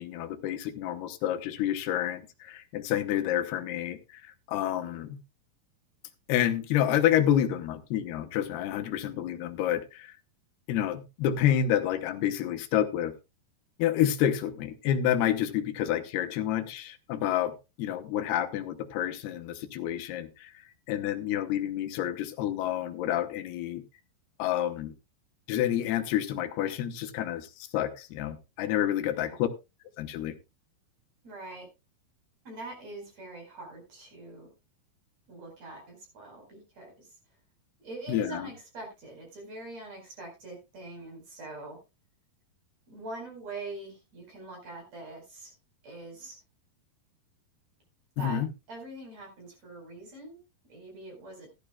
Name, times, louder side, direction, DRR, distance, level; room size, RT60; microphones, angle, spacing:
voice 1, 0.0-5.2 6.3-10.1 10.7-13.1 13.8-20.5 20.9-23.8 24.4-24.9 25.5-29.5 30.0-30.3 38.1-38.5 48.2-48.5, left 11 dB, 90° left, 3.0 m, -29 dB
voice 2, 29.1-29.4 31.2-31.7 32.4-34.5 35.3-37.1 37.8-41.8 42.9-45.5 45.8-46.4 48.2-48.4 48.7-50.4 50.7-51.5, right 2 dB, 45° right, 5.9 m, -43 dB
15.5 x 12.0 x 2.3 m
omnidirectional pair, 4.5 m